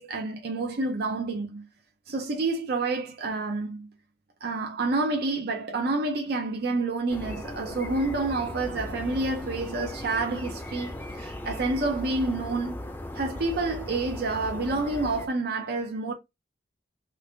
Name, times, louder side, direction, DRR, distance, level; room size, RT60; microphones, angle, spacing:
voice 1, 0.0-1.7 2.1-3.9 4.4-12.8 13.1-16.1, right 3 dB, 60° right, 0.6 m, -29 dB
sound 1, 7.1-15.3, left 1 dB, 10° left, 0.5 m, -37 dB
3.2 x 2.4 x 3.3 m
head